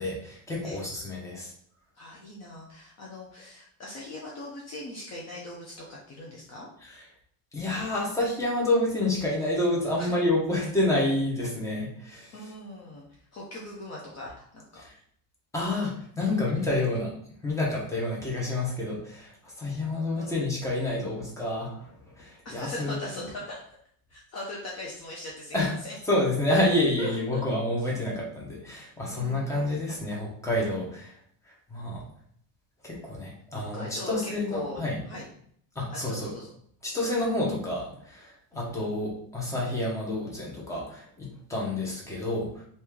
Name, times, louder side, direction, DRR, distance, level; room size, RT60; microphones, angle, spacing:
voice 1, 0.0-1.5 7.5-12.3 14.8-14.9 15.5-17.1 17.4-23.0 25.5-25.7 26.1-31.1 31.7-32.0 32.8-35.0 35.7-36.3 36.8-42.5, left 1 dB, 5° left, -3 dB, 0.9 m, -28 dB
voice 2, 2.0-6.7 10.0-10.1 12.3-14.8 16.4-16.7 20.2-20.4 22.4-23.6 24.1-26.0 27.0-27.4 29.1-29.7 33.5-35.3 35.9-36.5 38.5-38.7, left 1 dB, 35° left, -3 dB, 0.6 m, -40 dB
3.1 x 2.8 x 3.5 m, 0.63 s
cardioid pair, 145°, 48 cm